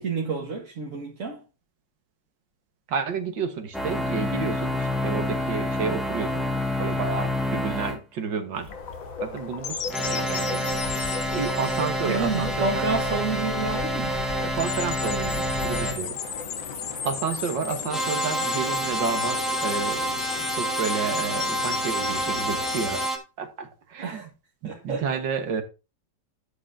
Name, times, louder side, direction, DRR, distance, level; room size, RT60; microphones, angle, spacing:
voice 1, 0.0-1.4 12.0-14.2 24.0-24.3 24.6-25.1, right 4 dB, 45° right, 1.7 m, -29 dB
voice 2, 2.9-6.5 6.8-8.7 9.2-10.6 11.3-12.9 14.4-16.2 17.0-20.0 20.5-24.3 24.6-25.6, right 6 dB, 70° right, 1.9 m, -31 dB
sound 1, 3.7-8.0 9.9-16.0 17.9-23.2, equal, ahead, 1.4 m, -28 dB
sound 2, 8.5-15.9, left 4 dB, 80° left, 2.8 m, -39 dB
sound 3, 8.7-23.1, left 6 dB, 50° left, 1.2 m, -35 dB
11.5 x 7.6 x 2.7 m
omnidirectional pair, 2.2 m